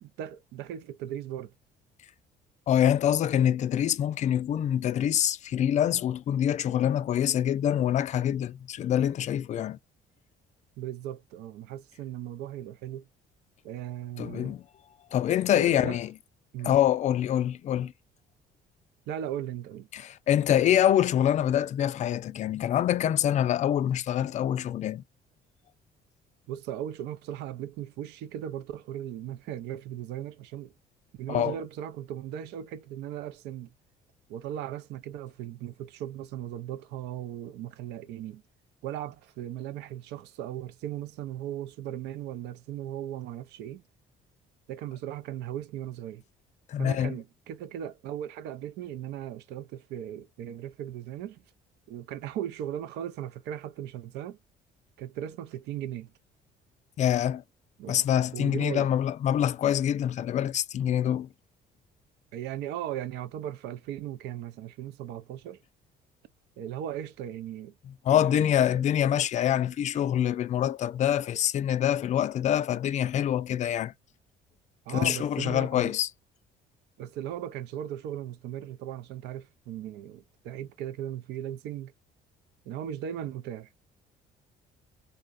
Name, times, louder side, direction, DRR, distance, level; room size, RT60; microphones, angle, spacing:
voice 1, 0.0-1.5 10.8-13.0 13.6-14.5 15.5-16.0 16.5-16.7 19.1-19.9 26.5-30.7 31.1-33.7 34.3-38.4 38.8-43.8 44.7-46.2 46.8-51.4 51.9-54.4 55.0-56.1 57.8-58.0 58.3-58.9 62.3-65.6 66.6-67.7 68.1-68.8 74.9-75.9 77.0-81.9 82.7-83.7, right 11 dB, 85° right, 0.5 m, -37 dB
voice 2, 2.7-9.8 14.2-14.6 15.1-16.1 16.6-17.9 19.9-25.0 31.3-31.6 46.7-47.2 57.0-57.4 57.9-61.3 67.9-73.9 74.9-76.1, left 10 dB, 45° left, 0.4 m, -25 dB
3.6 x 2.1 x 2.4 m
cardioid pair, 110°, 17 cm